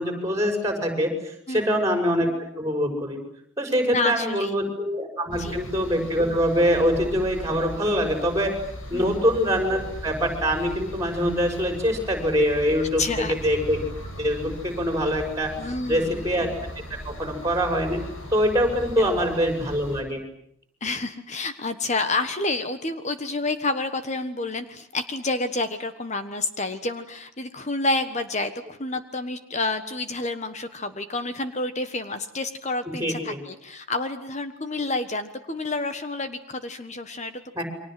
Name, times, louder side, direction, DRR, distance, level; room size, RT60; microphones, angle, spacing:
voice 1, 0.0-2.3 2.6-3.2 3.6-8.6 8.9-13.0 13.3-13.8 14.2-15.5 15.9-16.5 16.9-18.0 18.3-20.2 33.0-33.4 37.5-37.6, equal, 15° right, 4 dB, 5.9 m, -24 dB
voice 2, 1.5-1.8 3.9-4.6 5.3-5.6 8.9-9.2 13.0-13.3 15.6-16.2 19.0-19.1 20.8-37.6, left 2 dB, 35° left, 9 dB, 1.3 m, -29 dB
sound 1, 5.3-20.0, left 1 dB, 70° left, 6.1 m, -38 dB
29.5 x 24.0 x 7.7 m, 0.69 s
head